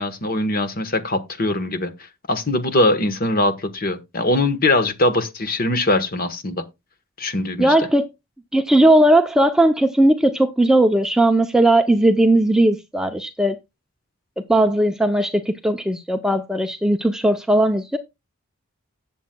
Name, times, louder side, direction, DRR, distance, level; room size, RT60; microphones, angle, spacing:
voice 1, 0.0-1.9 2.3-6.6 7.2-7.7, left 2 dB, 40° left, 1.1 m, -21 dB
voice 2, 7.6-8.1 8.5-13.6 14.5-18.0, right 1 dB, 5° right, 0.5 m, -17 dB
17.5 x 7.2 x 2.2 m
head